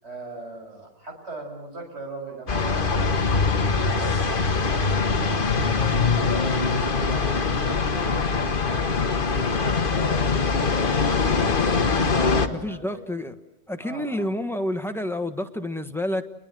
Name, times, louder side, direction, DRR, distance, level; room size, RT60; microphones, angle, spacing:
voice 1, 0.0-9.0 9.4-11.8 12.1-13.0 13.8-14.3, right 3 dB, 40° right, 2 dB, 7.3 m, -40 dB
sound 1, 2.5-12.5, left 4 dB, 35° left, 1.4 m, -23 dB
voice 2, 12.5-13.3 13.7-16.2, left 1 dB, ahead, 6 dB, 1.1 m, -29 dB
29.0 x 22.0 x 7.7 m, 0.90 s
omnidirectional pair, 1.8 m